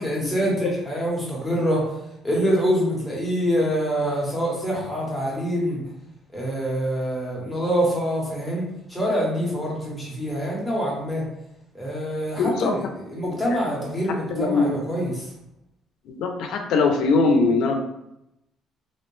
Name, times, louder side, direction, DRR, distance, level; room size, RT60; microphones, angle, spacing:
voice 1, 0.0-1.9 2.2-5.8 6.3-11.2 11.7-15.3, equal, ahead, -5 dB, 0.8 m, -25 dB
voice 2, 12.4-12.7 13.2-13.4 14.3-14.7 16.1-17.8, left 3 dB, 70° left, 4 dB, 0.4 m, -21 dB
2.5 x 2.0 x 3.0 m, 0.85 s
cardioid pair, 155°, 0 cm